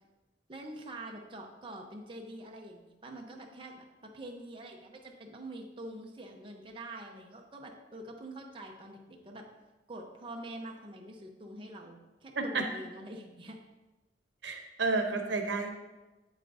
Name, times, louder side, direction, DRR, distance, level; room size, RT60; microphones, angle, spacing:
voice 1, 0.5-9.5 9.9-13.6, right 1 dB, 30° right, 1 dB, 0.8 m, -45 dB
voice 2, 14.4-15.7, right 3 dB, 85° right, 4 dB, 0.9 m, -31 dB
8.2 x 7.8 x 2.7 m, 1.1 s
head